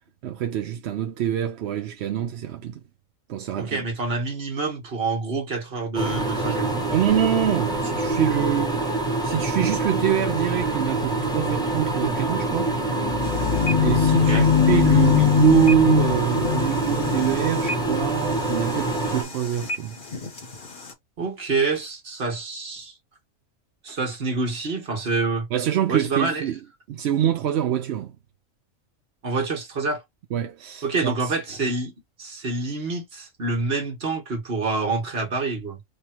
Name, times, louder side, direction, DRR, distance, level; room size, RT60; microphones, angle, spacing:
voice 1, 0.2-2.8 3.3-3.9 6.9-8.9 9.2-12.8 13.8-20.0 25.5-26.6 26.9-28.2 30.3-31.3, right 10 dB, 65° right, 0.7 m, -25 dB
voice 2, 3.6-6.8 14.2-14.5 21.2-22.9 23.8-25.5 25.9-26.4 29.2-30.0 30.8-31.9 32.2-35.8, right 3 dB, 50° right, 1.5 m, -27 dB
sound 1, 5.9-19.2, right 2 dB, 5° left, 0.9 m, -26 dB
sound 2, 12.5-17.9, left 8 dB, 75° left, 0.3 m, -22 dB
sound 3, 13.2-20.9, left 1 dB, 40° left, 1.1 m, -37 dB
3.3 x 2.2 x 4.3 m
omnidirectional pair, 1.4 m